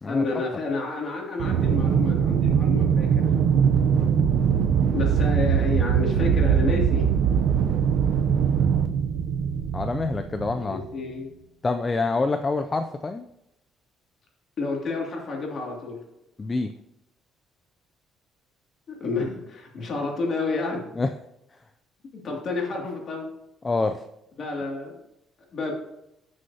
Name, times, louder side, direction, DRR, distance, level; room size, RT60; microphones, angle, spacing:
voice 1, 0.0-3.3 4.9-7.0 10.6-11.3 14.6-16.0 18.9-20.8 22.2-23.3 24.4-25.0 25.5-25.7, left 3 dB, 40° left, 0 dB, 2.5 m, -29 dB
Aircraft, 1.4-10.9, right 7 dB, 60° right, 0.7 m, -22 dB
voice 2, 9.7-10.9 11.6-13.2 16.4-16.7 21.0-21.1 23.6-24.0, left 3 dB, 20° left, 7 dB, 0.4 m, -26 dB
14.5 x 6.4 x 2.8 m, 0.87 s
cardioid pair, 160°, 0 cm